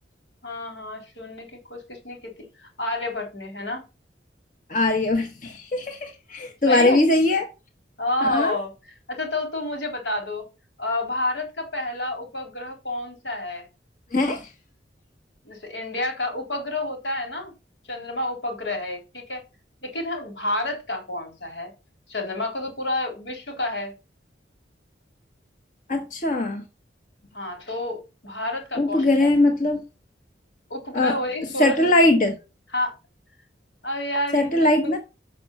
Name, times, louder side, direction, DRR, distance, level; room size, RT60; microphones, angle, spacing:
voice 1, 0.4-3.8 6.7-7.0 8.0-8.7 9.1-10.5 10.8-13.7 15.4-17.5 17.9-19.4 19.8-21.7 22.1-23.9 27.3-29.3 30.7-31.9 32.7-32.9 33.8-35.0, left 1 dB, 85° left, 3.8 m, -29 dB
voice 2, 4.7-7.5 8.2-8.5 14.1-14.5 25.9-26.6 28.8-29.8 30.9-31.1 31.6-32.4 34.3-35.0, left 2 dB, 45° left, 1.3 m, -21 dB
6.9 x 6.1 x 7.2 m
head